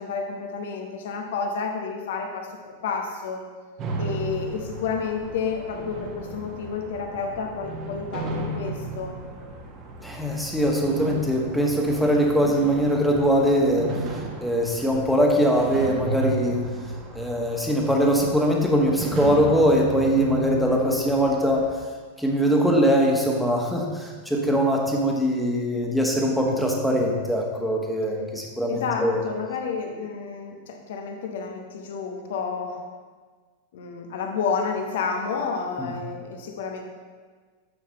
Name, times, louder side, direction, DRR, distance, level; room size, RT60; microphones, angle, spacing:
voice 1, 0.0-3.4 4.0-9.2 28.7-32.8 33.7-36.8, left 5 dB, 55° left, 3 dB, 1.2 m, -30 dB
sound 1, 3.8-21.8, right 2 dB, 35° right, 1.3 m, -35 dB
voice 2, 10.0-13.9 14.4-16.6 17.1-21.7 22.2-29.2 35.8-35.9, equal, ahead, -1 dB, 1.5 m, -22 dB
11.0 x 7.6 x 3.2 m, 1.5 s
figure-of-eight pair, 90°, 0 cm